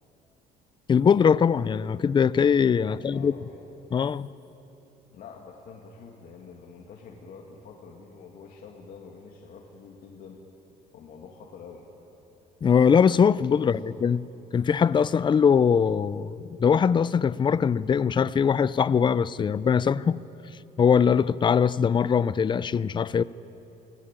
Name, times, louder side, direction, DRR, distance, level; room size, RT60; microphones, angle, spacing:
voice 1, 0.9-3.3 3.9-4.3 12.6-14.2 14.5-20.2 20.8-23.2, left 7 dB, 25° left, 0.5 m, -21 dB
voice 2, 2.9-3.6 5.1-10.4 10.9-11.9 13.5-14.0, left 5 dB, 60° left, 2.3 m, -46 dB
24.0 x 17.0 x 9.1 m
cardioid pair, 110°, 17 cm